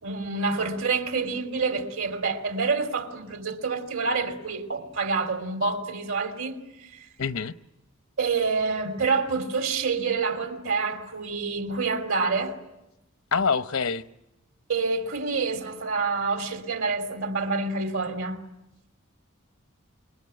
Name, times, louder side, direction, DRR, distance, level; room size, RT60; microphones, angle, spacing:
voice 1, 0.0-6.6 6.9-7.1 8.2-12.6 14.7-18.4, right 4 dB, 70° right, 3.1 m, -27 dB
voice 2, 7.2-7.5 13.3-14.0, left 5 dB, 75° left, 0.9 m, -25 dB
27.0 x 22.0 x 9.9 m
head